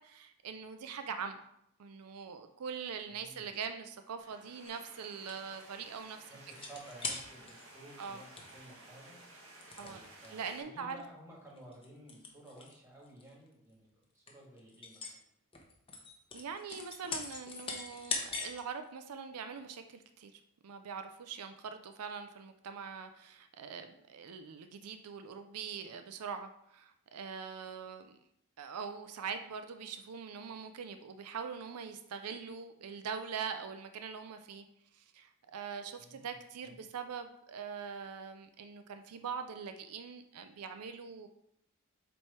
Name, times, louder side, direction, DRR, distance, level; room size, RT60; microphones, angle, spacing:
voice 1, 0.0-1.4 1.8-6.2 8.0-8.2 9.8-10.0 10.3-11.0 16.3-28.2 28.6-34.6 34.9-41.3, right 6 dB, 90° right, 8 dB, 0.5 m, -43 dB
voice 2, 3.1-3.5 6.3-9.2 9.8-15.2 36.0-36.4 36.6-36.8, right 1 dB, 15° right, -4 dB, 2.1 m, -54 dB
sound 1, 4.2-10.6, right 2 dB, 65° right, 1.6 m, -55 dB
sound 2, 4.7-5.6 6.5-7.7 8.0-8.1 8.4-8.7 9.6-10.3 10.9-11.1 11.6-12.7 13.1-13.3 13.9-14.0 14.3-15.2 15.5-18.6 19.1-19.2, left 4 dB, 25° left, 0.8 m, -41 dB
7.9 x 3.1 x 4.4 m, 0.75 s
head